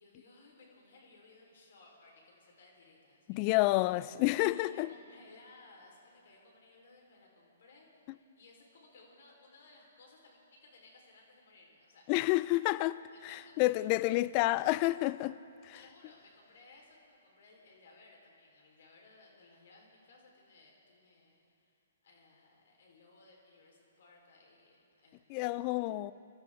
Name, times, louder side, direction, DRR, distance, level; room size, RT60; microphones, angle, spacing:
voice 1, 0.0-3.8 4.5-12.3 12.5-12.7 13.1-14.6 15.7-26.0, left 3 dB, 60° left, 4.4 m, -60 dB
voice 2, 3.3-4.9 12.1-15.4 15.6-15.7 25.3-26.1, left 19 dB, 35° left, 0.4 m, -29 dB
24.5 x 12.5 x 3.8 m
figure-of-eight pair, 125°, 0 cm